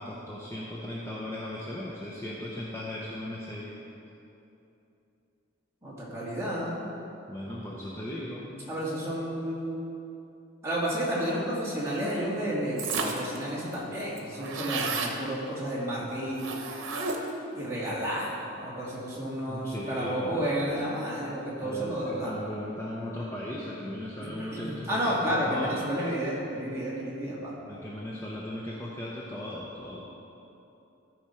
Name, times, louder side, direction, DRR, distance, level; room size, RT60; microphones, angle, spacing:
voice 1, 0.0-3.7 7.3-8.5 19.5-20.6 21.6-25.8 27.6-30.0, left 1 dB, 15° left, -6 dB, 0.7 m, -37 dB
voice 2, 5.8-6.8 8.7-9.8 10.6-16.5 17.5-22.3 24.2-27.5, equal, 15° right, -7 dB, 1.9 m, -31 dB
sound 1, 12.8-13.4 13.7-13.8 14.0-15.2 16.4-17.4, right 4 dB, 85° right, 0.9 m, -32 dB
14.0 x 5.0 x 4.4 m, 2.9 s
head